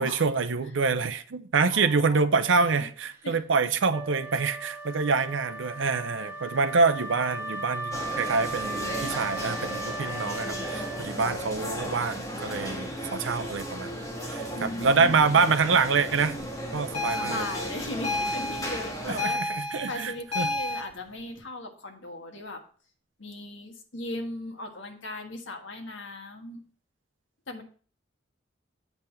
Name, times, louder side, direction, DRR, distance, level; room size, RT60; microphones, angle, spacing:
voice 1, 0.0-14.0 14.3-16.4 16.7-17.4 19.0-20.5, right 4 dB, 75° right, 0.6 m, -26 dB
voice 2, 1.7-2.8 3.2-3.4 14.5-15.6 17.1-22.6 23.2-26.6 27.5-27.6, left 2 dB, 75° left, 1.5 m, -38 dB
Wind instrument woodwind instrument, 3.9-11.5, right 2 dB, 15° right, 1.5 m, -37 dB
sound 1, 7.9-19.2, equal, 20° left, 1.7 m, -35 dB
sound 2, 16.9-20.8, left 2 dB, 35° left, 3.0 m, -31 dB
8.1 x 5.5 x 4.4 m
head